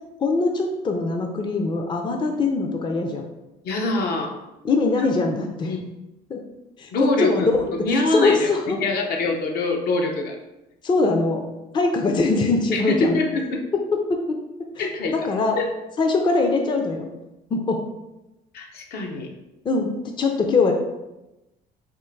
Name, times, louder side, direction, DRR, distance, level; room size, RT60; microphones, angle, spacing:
voice 1, 0.2-3.3 4.6-5.7 6.3-6.4 6.8-8.8 10.8-11.4 11.7-13.2 13.7-14.2 14.8-14.9 15.1-15.6 16.0-17.1 17.5-17.8 19.6-20.7, left 3 dB, 30° left, 3 dB, 0.5 m, -22 dB
voice 2, 3.6-4.4 5.6-5.8 6.9-8.5 8.8-10.4 12.7-13.6 14.8-15.1 15.6-15.7 18.5-19.3, left 3 dB, 65° left, 2 dB, 0.7 m, -24 dB
3.6 x 2.5 x 4.4 m, 0.98 s
cardioid pair, 110°, 17 cm